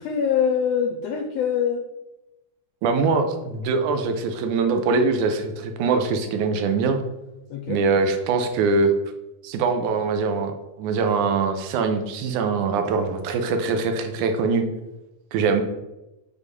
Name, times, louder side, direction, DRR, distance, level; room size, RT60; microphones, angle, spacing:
voice 1, 0.0-1.8 7.5-7.8, left 7 dB, 80° left, 3 dB, 1.4 m, -24 dB
voice 2, 2.8-7.0 7.7-8.9 9.4-14.6 15.3-15.6, right 4 dB, 85° right, 6 dB, 2.2 m, -23 dB
6.4 x 3.5 x 5.2 m, 0.98 s
omnidirectional pair, 3.4 m